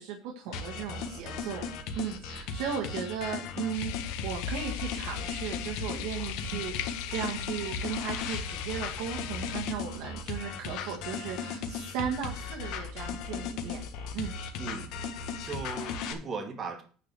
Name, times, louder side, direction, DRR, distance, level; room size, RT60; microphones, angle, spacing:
voice 1, 0.0-1.7 1.9-13.9 14.1-14.3, right 8 dB, 75° right, -1 dB, 1.8 m, -36 dB
sound 1, 0.5-16.1, left 5 dB, 60° left, 1.6 m, -37 dB
sound 2, 3.7-9.7, left 11 dB, 85° left, 0.8 m, -38 dB
voice 2, 14.6-16.8, right 4 dB, 25° right, 4 dB, 1.5 m, -38 dB
10.0 x 4.8 x 6.9 m, 0.41 s
cardioid pair, 175°, 0 cm